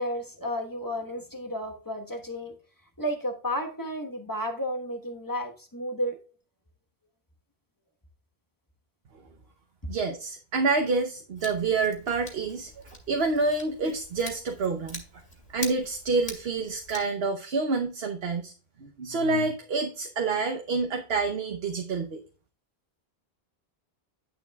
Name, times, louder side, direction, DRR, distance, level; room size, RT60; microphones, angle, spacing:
voice 1, 0.0-2.5 3.0-6.2, equal, 20° left, 1.2 m, -32 dB
voice 2, 9.9-12.7 13.1-15.2 15.5-18.5 18.8-22.2, right 3 dB, 80° right, 1.1 m, -28 dB
Scissors, 11.4-17.0, left 2 dB, 45° left, 2.4 m, -44 dB
11.0 x 7.1 x 2.3 m
omnidirectional pair, 1.0 m